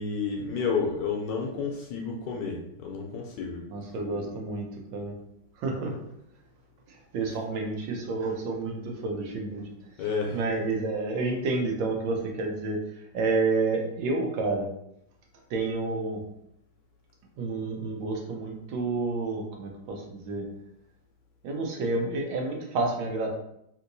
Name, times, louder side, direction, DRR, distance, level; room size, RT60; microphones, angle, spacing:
voice 1, 0.0-3.6 10.0-10.4, left 5 dB, 75° left, 0 dB, 1.1 m, -30 dB
voice 2, 3.7-5.1 5.6-5.9 7.1-9.6 10.3-12.8 13.1-14.7 15.5-16.2 17.4-20.5 21.4-23.3, right 3 dB, 75° right, 1 dB, 1.4 m, -29 dB
3.4 x 2.9 x 2.6 m, 0.76 s
omnidirectional pair, 2.2 m